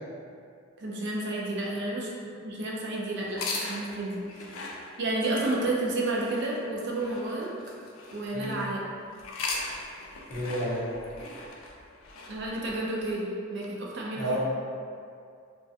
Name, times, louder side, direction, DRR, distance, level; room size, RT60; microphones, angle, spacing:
voice 1, 0.8-2.1 2.4-4.6 5.0-7.5 8.1-8.8 12.3-14.4, right 2 dB, 55° right, -3 dB, 0.4 m, -31 dB
sound 1, 3.3-8.6 9.1-13.2, left 3 dB, 85° left, 0.4 m, -39 dB
voice 2, 10.3-11.3 14.1-14.4, equal, 90° right, -11 dB, 1.1 m, -31 dB
2.3 x 2.1 x 2.6 m, 2.3 s
head